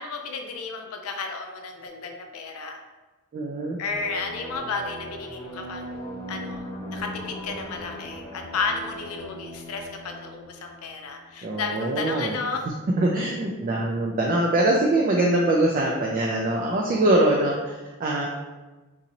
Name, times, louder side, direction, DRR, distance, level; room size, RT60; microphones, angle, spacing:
voice 1, 0.0-2.8 3.8-5.9 6.3-12.7, left 4 dB, 80° left, 3 dB, 0.5 m, -33 dB
voice 2, 3.3-3.8 11.4-12.3 13.0-18.3, right 1 dB, 40° right, -1 dB, 0.3 m, -23 dB
sound 1, 3.9-11.3, equal, 20° left, 0.8 m, -39 dB
3.9 x 2.6 x 2.9 m, 1.2 s
head